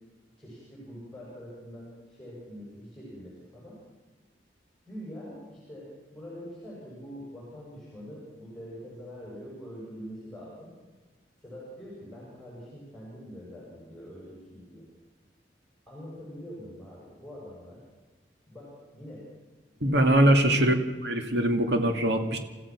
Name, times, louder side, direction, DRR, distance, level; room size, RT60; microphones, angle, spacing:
voice 1, 0.4-3.8 4.9-10.7 11.4-14.8 15.9-17.8 18.5-19.2 19.7-20.6, equal, 5° left, -6 dB, 7.4 m, -44 dB
voice 2, 19.8-20.7 21.0-22.4, right 1 dB, 65° right, 5 dB, 2.5 m, -22 dB
29.5 x 15.0 x 6.2 m, 1.3 s
head